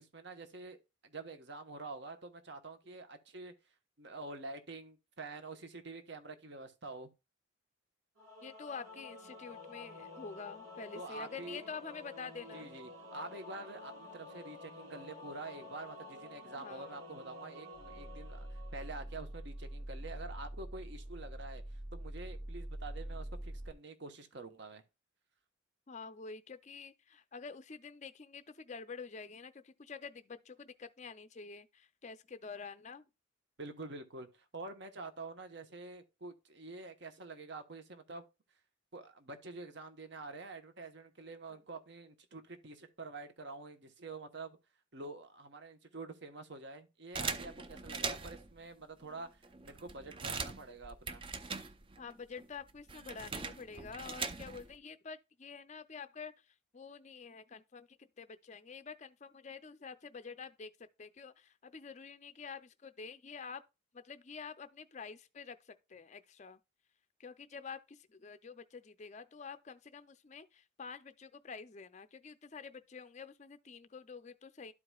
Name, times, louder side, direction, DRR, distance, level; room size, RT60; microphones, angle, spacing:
voice 1, 0.0-3.5 4.0-7.1 10.9-11.6 12.5-21.6 21.9-24.8 33.6-38.2 38.9-44.6 44.9-51.3, right 3 dB, 55° right, 1.0 m, -47 dB
Singing / Musical instrument, 8.2-19.4, left 2 dB, 80° right, 2.2 m, -51 dB
voice 2, 8.4-12.7 16.6-17.0 25.9-33.1 52.0-56.3 56.7-57.9 58.2-60.7 61.0-63.6 63.9-65.6 65.9-66.6 67.2-74.7, left 5 dB, 35° left, 0.5 m, -48 dB
sound 1, 17.8-23.7, right 1 dB, 5° right, 0.8 m, -44 dB
sound 2, 47.1-48.5 49.1-49.2 49.4-52.1 52.4-54.7, right 4 dB, 25° right, 0.5 m, -41 dB
12.5 x 4.9 x 2.3 m
head